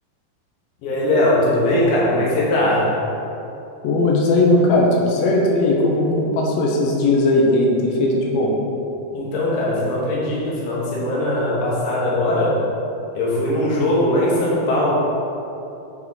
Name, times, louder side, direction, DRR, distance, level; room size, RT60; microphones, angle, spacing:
voice 1, 0.8-3.0 9.1-12.6 13.1-14.9, left 1 dB, 90° left, -5 dB, 3.0 m, -20 dB
voice 2, 3.8-8.5, left 2 dB, 70° left, -2 dB, 1.7 m, -18 dB
8.8 x 3.6 x 4.0 m, 2.8 s
omnidirectional pair, 3.9 m